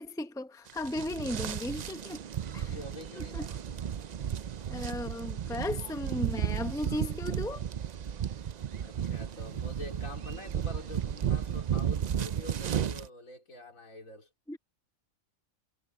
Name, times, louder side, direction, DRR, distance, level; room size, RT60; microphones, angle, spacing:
voice 1, 0.0-2.2 2.5-2.8 3.2-3.5 4.7-7.6 14.5-14.6, left 1 dB, 5° left, 0.9 m, -36 dB
sound 1, 0.7-13.1, right 9 dB, 85° right, 0.3 m, -34 dB
voice 2, 2.7-3.6 8.8-14.3, left 2 dB, 75° left, 4.1 m, -46 dB
omnidirectional pair, 1.4 m